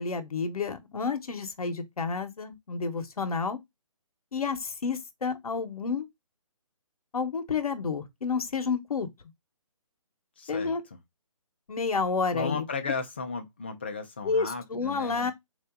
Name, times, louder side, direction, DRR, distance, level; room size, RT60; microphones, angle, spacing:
voice 1, 0.0-3.6 4.3-6.1 7.1-9.1 10.5-10.8 11.7-12.9 14.2-15.3, left 5 dB, 85° left, 1.0 m, -30 dB
voice 2, 10.4-11.0 12.3-15.3, left 4 dB, 20° left, 0.4 m, -35 dB
3.8 x 2.7 x 3.5 m
hypercardioid pair, 170°, 18 cm